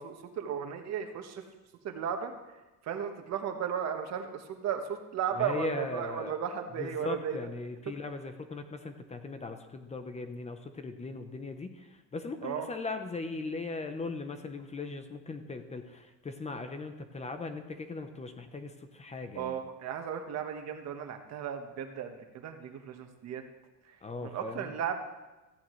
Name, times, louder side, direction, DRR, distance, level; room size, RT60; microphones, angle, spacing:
voice 1, 0.0-1.4 1.8-2.3 2.8-7.4 12.4-12.7 19.3-23.4 23.8-24.0 24.2-25.0, right 8 dB, 55° right, 5 dB, 1.5 m, -35 dB
voice 2, 5.4-6.3 6.8-19.6 24.0-24.7, left 3 dB, 20° left, 8 dB, 0.9 m, -39 dB
16.0 x 15.0 x 3.3 m, 1.1 s
cardioid pair, 130°, 32 cm